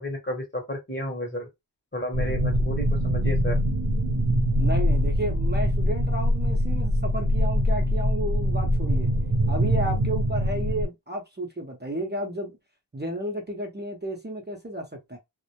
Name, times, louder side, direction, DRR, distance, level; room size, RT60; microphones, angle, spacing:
voice 1, 0.0-1.5 1.9-3.6, equal, 25° left, 1.0 m, -32 dB
sound 1, 2.1-10.9, equal, 70° right, 0.7 m, -23 dB
voice 2, 4.6-9.1 9.5-12.5 12.9-15.2, right 1 dB, 25° right, 0.7 m, -32 dB
2.1 x 2.1 x 2.8 m
wide cardioid pair, 45°, 41 cm